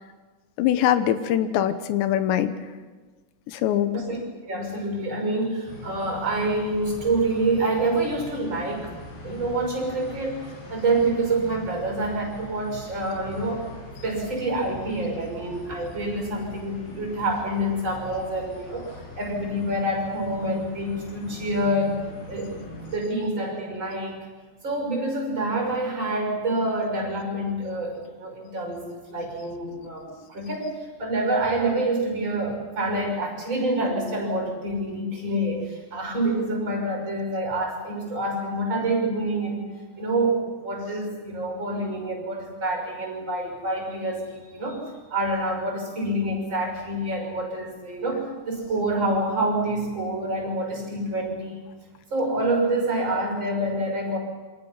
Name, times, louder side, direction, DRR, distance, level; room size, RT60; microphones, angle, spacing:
voice 1, 0.6-2.5 3.5-4.0, left 11 dB, 90° left, 10 dB, 3.3 m, -22 dB
voice 2, 4.5-8.9 9.2-13.7 14.0-22.6 22.9-24.3 24.6-39.7 40.0-51.6 52.1-54.2, right 1 dB, 25° right, 1 dB, 6.4 m, -27 dB
sound 1, 5.7-23.0, left 1 dB, 70° left, 8.2 m, -42 dB
28.0 x 25.5 x 5.7 m, 1.4 s
omnidirectional pair, 5.0 m